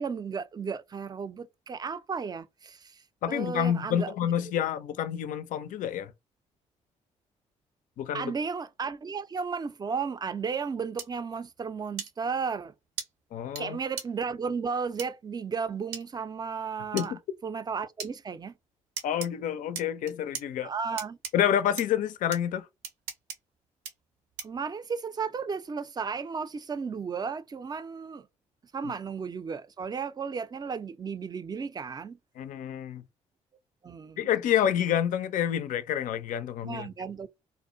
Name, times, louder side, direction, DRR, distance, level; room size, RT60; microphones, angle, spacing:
voice 1, 0.0-3.0 3.3-4.1 8.1-12.7 13.6-17.1 17.4-18.5 20.6-21.2 24.4-28.3 28.7-32.2 33.8-34.3 36.6-37.3, right 5 dB, 25° right, 0.4 m, -34 dB
voice 2, 3.2-6.1 8.0-8.3 13.3-13.8 16.9-17.2 19.0-20.7 21.3-22.7 32.4-33.0 34.2-36.9, left 10 dB, 60° left, 0.4 m, -28 dB
sound 1, 11.0-11.1 12.0-12.1 13.0-13.1 13.6-13.7 14.0-14.1 15.0-15.1 15.9-16.0 17.0-17.1 18.0-18.1 19.0-19.3 19.7-20.4 21.0-21.3 21.8-21.9 22.3-22.4 22.8-23.4 23.8-23.9 24.4-24.6, right 6 dB, 80° right, 0.6 m, -36 dB
2.4 x 2.1 x 2.5 m
hypercardioid pair, 50°, 15 cm